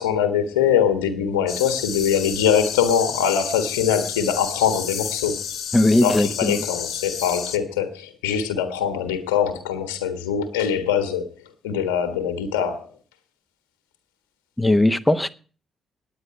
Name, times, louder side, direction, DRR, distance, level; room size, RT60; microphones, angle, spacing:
voice 1, 0.0-5.4 6.0-11.3 11.6-12.9, left 8 dB, 80° left, 1.5 m, -22 dB
sound 1, 1.5-7.6, left 7 dB, 60° left, 1.4 m, -31 dB
voice 2, 5.7-6.6 14.6-15.3, left 1 dB, 10° left, 1.0 m, -18 dB
9.7 x 9.3 x 8.7 m
figure-of-eight pair, 40°, 0 cm